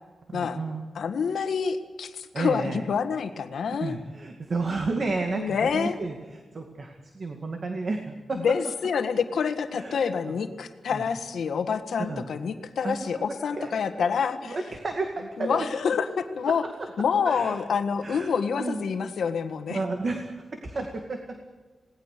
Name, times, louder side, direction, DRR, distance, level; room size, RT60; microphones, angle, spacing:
voice 1, 0.3-0.9 2.3-2.8 3.8-8.4 9.7-10.4 10.9-11.0 12.1-12.2 12.8-14.1 14.4-15.7 17.2-17.6 18.0-18.8 19.7-20.2 20.6-21.4, right 3 dB, 40° right, 4 dB, 2.1 m, -32 dB
voice 2, 0.9-4.0 5.3-6.0 8.3-14.6 15.4-16.6 17.0-19.8, left 6 dB, 80° left, 8 dB, 1.6 m, -27 dB
28.0 x 19.0 x 6.8 m, 1.3 s
wide cardioid pair, 170°, 0 cm